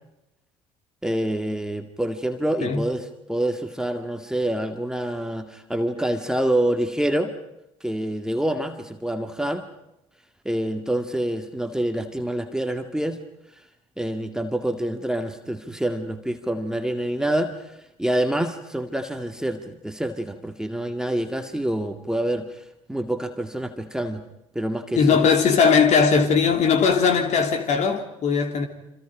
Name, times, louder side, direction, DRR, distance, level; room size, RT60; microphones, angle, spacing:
voice 1, 1.0-7.3 7.8-9.7 10.5-13.2 14.0-22.6 22.9-24.2 24.6-25.3, right 1 dB, 5° right, 2.1 m, -27 dB
voice 2, 25.0-28.7, left 5 dB, 45° left, 3.2 m, -19 dB
28.5 x 26.5 x 5.1 m
figure-of-eight pair, 60°, 17 cm